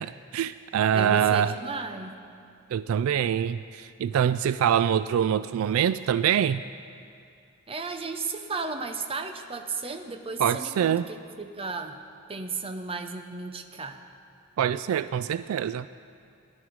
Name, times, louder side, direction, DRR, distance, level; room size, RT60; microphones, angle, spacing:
voice 1, 0.0-1.5 2.7-6.6 10.4-11.1 14.6-15.9, right 9 dB, 70° right, 14 dB, 0.3 m, -24 dB
voice 2, 0.9-2.2 7.7-12.0 12.3-14.0, right 4 dB, 25° right, 6 dB, 0.8 m, -34 dB
19.5 x 11.0 x 4.7 m, 2.5 s
head